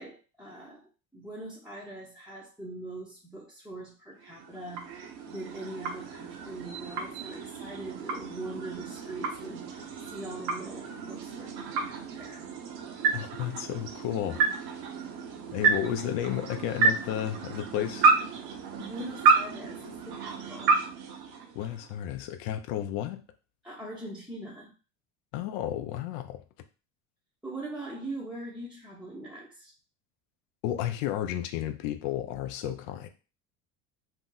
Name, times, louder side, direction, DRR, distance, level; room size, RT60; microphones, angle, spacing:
voice 1, 0.0-12.5 18.6-20.8 23.6-24.7 27.4-29.7, right 1 dB, 5° right, 0.6 m, -42 dB
sound 1, 4.2-22.0, right 4 dB, 70° right, 0.8 m, -30 dB
voice 2, 13.1-14.5 15.5-18.1 21.5-23.2 25.3-26.4 30.6-33.1, left 11 dB, 75° left, 0.5 m, -32 dB
2.7 x 2.1 x 3.7 m
supercardioid pair, 105°, 40 cm